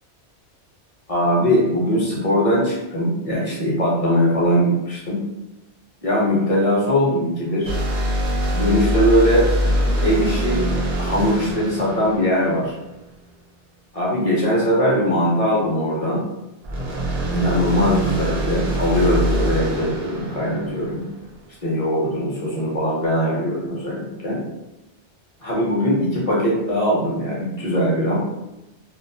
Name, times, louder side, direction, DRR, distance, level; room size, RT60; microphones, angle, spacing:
voice 1, 1.1-5.2 6.0-7.7 8.5-9.5 10.0-10.6 11.0-12.7 13.9-16.3 17.3-21.0 21.6-24.4 25.4-28.2, equal, 40° left, -5 dB, 0.6 m, -20 dB
sound 1, 7.6-13.1 16.6-21.4, equal, 50° right, 0.5 m, -24 dB
2.3 x 2.3 x 2.6 m, 0.93 s
omnidirectional pair, 1.2 m